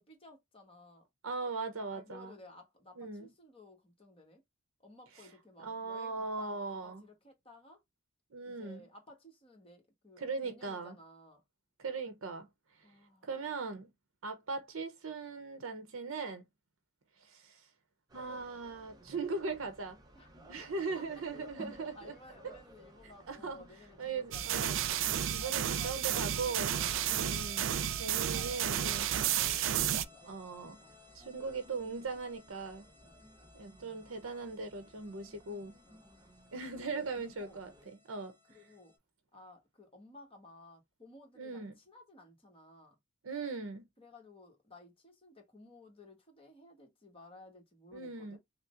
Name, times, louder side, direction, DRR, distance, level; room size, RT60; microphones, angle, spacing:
voice 1, 0.0-1.1 1.9-4.4 4.8-7.8 8.4-11.4 12.8-13.3 20.1-20.3 20.6-21.3 21.6-21.7 21.9-24.7 25.4-26.6 27.0-27.3 28.2-30.3 30.6-31.0 32.9-33.2 35.8-36.0 36.8-37.6 38.5-38.9 39.3-43.0 44.0-48.4, left 2 dB, 25° left, 1.2 m, -56 dB
voice 2, 1.2-2.3 3.0-3.3 5.6-7.0 8.3-8.8 10.2-10.9 11.8-12.5 13.2-13.9 14.2-16.4 17.2-17.6 18.1-20.0 20.5-22.2 22.4-22.5 23.3-23.7 24.0-24.8 25.3-26.7 27.1-27.7 28.0-29.1 30.3-30.8 31.1-32.9 33.5-35.8 36.5-38.4 41.4-41.8 43.2-43.9 47.9-48.4, right 4 dB, 80° right, 0.8 m, -39 dB
sound 1, 18.1-37.9, right 1 dB, 20° right, 0.6 m, -57 dB
sound 2, 24.3-30.0, right 10 dB, 65° right, 0.4 m, -32 dB
sound 3, 26.5-39.0, left 4 dB, 10° left, 1.2 m, -60 dB
5.6 x 2.1 x 2.5 m
head